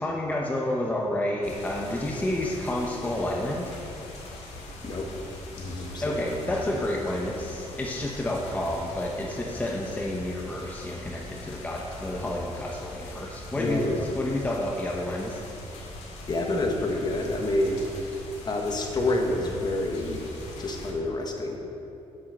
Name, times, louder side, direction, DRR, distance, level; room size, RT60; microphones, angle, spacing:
voice 1, 0.0-3.7 6.0-13.8 14.2-15.4, left 1 dB, 15° left, -2 dB, 0.8 m, -30 dB
sound 1, 1.4-20.9, left 1 dB, 85° left, 2.1 m, -42 dB
voice 2, 5.6-6.6 13.6-14.1 16.3-17.8 18.5-20.2 20.6-21.6, left 2 dB, 40° left, 2 dB, 1.3 m, -28 dB
7.4 x 7.3 x 6.6 m, 2.9 s
cardioid pair, 120°, 11 cm